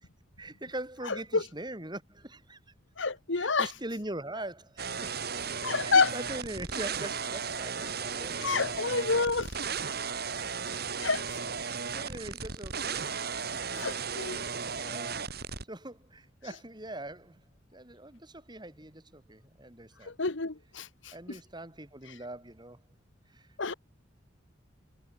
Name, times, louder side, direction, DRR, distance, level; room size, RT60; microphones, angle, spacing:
voice 1, 0.4-2.6 3.3-5.3 5.8-8.9 10.3-10.5 10.7-10.8 11.6-13.1 13.7-13.8 14.8-15.3 15.7-17.4 17.7-20.1 21.1-22.8 23.3-23.5, right 1 dB, 20° right, 4.7 m, -42 dB
voice 2, 1.1-1.4 3.0-3.7 5.6-6.1 8.4-9.5 11.0-11.4 13.7-14.4 20.0-21.4 23.6-23.7, left 4 dB, 70° left, 1.4 m, -29 dB
sound 1, 4.8-15.6, right 6 dB, 55° right, 3.1 m, -35 dB
head